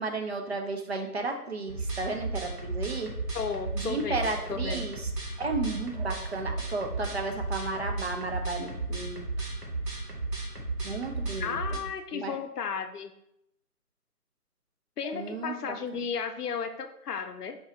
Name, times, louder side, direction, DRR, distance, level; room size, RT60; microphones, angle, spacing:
voice 1, 0.0-3.1 3.7-5.1 5.4-9.2 10.8-11.6 12.1-12.4 15.0-16.0, right 3 dB, 45° right, 4 dB, 0.5 m, -33 dB
sound 1, 1.7-11.8, right 3 dB, 85° right, 1.3 m, -34 dB
voice 2, 3.3-4.2 4.5-4.9 11.4-13.1 15.0-17.6, left 6 dB, 80° left, 8 dB, 0.6 m, -34 dB
4.5 x 2.9 x 3.1 m, 0.78 s
figure-of-eight pair, 160°, 46 cm